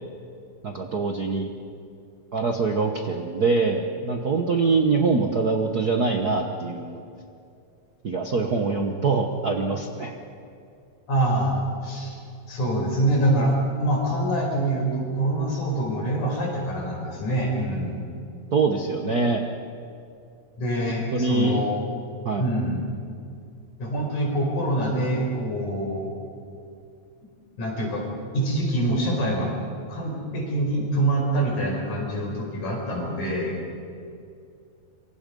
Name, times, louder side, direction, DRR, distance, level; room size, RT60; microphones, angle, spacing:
voice 1, 0.6-1.5 2.3-7.0 8.0-10.1 18.5-19.4 20.9-21.6 22.2-22.4, right 4 dB, 55° right, 3 dB, 1.1 m, -24 dB
voice 2, 11.1-12.2 12.5-18.0 20.6-21.7 22.4-22.8 23.8-26.1 27.6-28.1 28.3-29.5 29.9-33.6, right 1 dB, 80° left, -1 dB, 6.4 m, -25 dB
27.0 x 24.0 x 5.4 m, 2.5 s
omnidirectional pair, 3.4 m